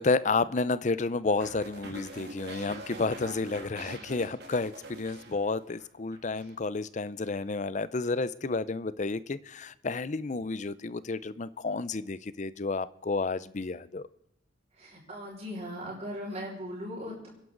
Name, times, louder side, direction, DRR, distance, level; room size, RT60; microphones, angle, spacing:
voice 1, 0.0-14.1, left 3 dB, 40° left, 17 dB, 0.5 m, -31 dB
sound 1, 1.4-5.8 6.1-6.5, right 2 dB, 60° right, 2.4 m, -44 dB
voice 2, 14.8-17.3, equal, 35° right, -3 dB, 5.5 m, -38 dB
26.0 x 11.0 x 3.9 m, 0.80 s
head